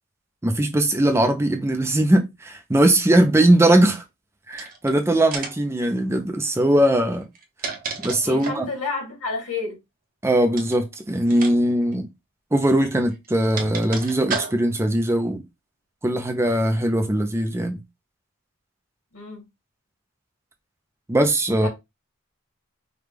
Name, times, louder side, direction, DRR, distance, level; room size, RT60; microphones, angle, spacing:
voice 1, 0.4-4.0 4.5-7.2 8.0-8.7 10.2-12.1 12.5-15.4 16.0-17.8 21.1-21.7, right 1 dB, 10° right, 0.4 m, -20 dB
sound 1, 4.5-4.9 5.3-5.7 7.2-8.7 10.5-10.8 11.3-11.5 11.8-11.9 12.9-14.8, right 4 dB, 40° right, 0.8 m, -32 dB
voice 2, 8.2-9.8 19.1-19.4 21.6-21.7, left 4 dB, 85° left, 2.6 m, -30 dB
5.0 x 2.2 x 3.3 m
head